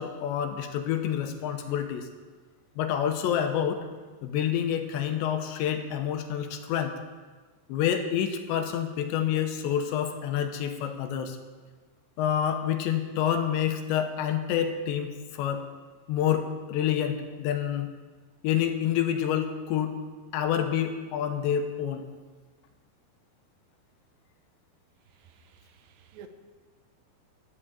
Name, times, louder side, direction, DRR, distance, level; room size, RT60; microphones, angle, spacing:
voice 1, 0.0-2.1 2.8-3.8 4.2-7.0 7.7-11.4 12.2-15.6 16.1-17.9 18.4-20.0 20.3-22.0, left 9 dB, 80° left, 6 dB, 3.2 m, -28 dB
voice 2, 25.1-26.3, right 7 dB, 80° right, 7 dB, 3.1 m, -52 dB
12.5 x 7.8 x 8.4 m, 1.4 s
omnidirectional pair, 5.1 m